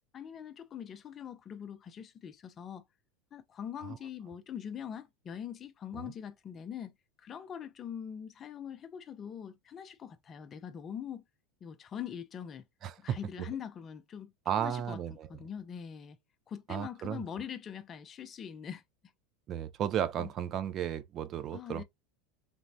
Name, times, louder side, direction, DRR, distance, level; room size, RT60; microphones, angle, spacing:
voice 1, 0.1-2.9 3.3-11.2 11.6-12.6 13.0-14.3 14.6-15.0 15.3-16.2 16.5-18.8 20.2-20.3 21.5-21.8, left 8 dB, 30° left, 0.4 m, -43 dB
voice 2, 12.8-13.2 14.5-15.3 16.7-17.3 19.5-21.8, right 9 dB, 40° right, 0.3 m, -34 dB
3.3 x 2.0 x 2.6 m
supercardioid pair, 120°, 0 cm